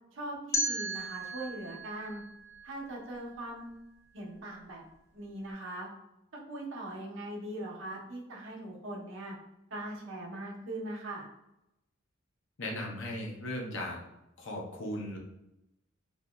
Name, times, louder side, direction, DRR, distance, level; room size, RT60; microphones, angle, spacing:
voice 1, 0.1-2.2 2.6-3.7 4.1-4.8 5.1-5.9 6.3-9.4 9.7-11.2, right 1 dB, 65° right, -2 dB, 0.7 m, -40 dB
sound 1, 0.5-3.5, right 1 dB, 15° left, 0.4 m, -36 dB
voice 2, 12.6-14.0 14.4-15.2, left 1 dB, 65° left, 0 dB, 0.7 m, -37 dB
2.8 x 2.6 x 2.2 m, 0.87 s
head